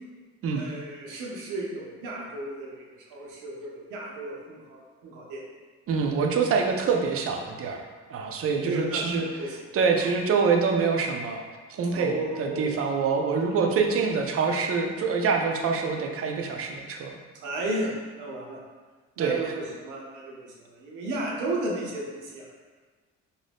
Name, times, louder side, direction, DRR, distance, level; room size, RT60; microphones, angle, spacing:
voice 1, 0.6-2.8 3.1-5.4 8.6-9.6 10.0-10.1 11.9-12.8 13.4-13.6 15.5-15.6 17.4-18.6 19.2-22.6, right 2 dB, 85° right, -3 dB, 0.7 m, -34 dB
voice 2, 5.9-7.8 8.1-9.3 9.7-11.4 11.7-17.2 19.2-19.5, right 5 dB, 50° right, 3 dB, 0.4 m, -25 dB
2.6 x 2.2 x 3.3 m, 1.4 s
cardioid pair, 90°, 30 cm